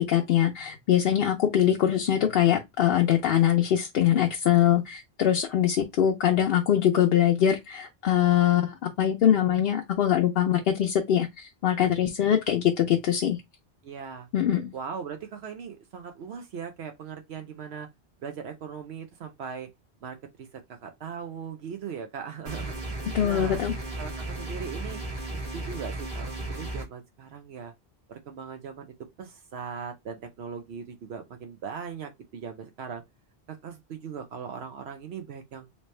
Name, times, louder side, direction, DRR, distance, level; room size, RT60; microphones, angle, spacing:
voice 1, 0.0-13.4 14.3-14.7 23.1-23.7, left 10 dB, 65° left, 0.7 m, -23 dB
voice 2, 13.8-14.3 14.7-17.9 18.2-19.7 20.0-23.6 24.0-25.0 25.3-27.7 28.1-33.0 33.5-35.7, right 6 dB, 75° right, 0.9 m, -39 dB
sound 1, 22.5-26.9, right 2 dB, 35° right, 1.6 m, -35 dB
3.2 x 2.8 x 3.1 m
omnidirectional pair, 1.1 m